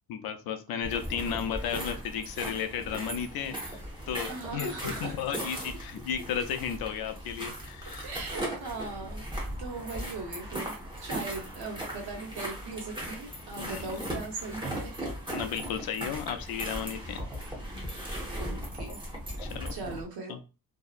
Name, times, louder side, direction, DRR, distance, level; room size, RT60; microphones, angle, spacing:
voice 1, 0.1-3.8 4.1-8.0 13.6-14.0 15.3-17.2 19.4-19.7 20.3-20.4, left 8 dB, 70° left, 8 dB, 0.5 m, -34 dB
sound 1, 0.8-20.0, right 1 dB, 15° right, 0.7 m, -38 dB
voice 2, 4.2-5.2 8.0-15.1 15.6-15.9 18.4-19.0 19.7-20.4, right 3 dB, 85° right, 1 dB, 0.9 m, -39 dB
2.7 x 2.0 x 2.3 m, 0.31 s
cardioid pair, 160°, 37 cm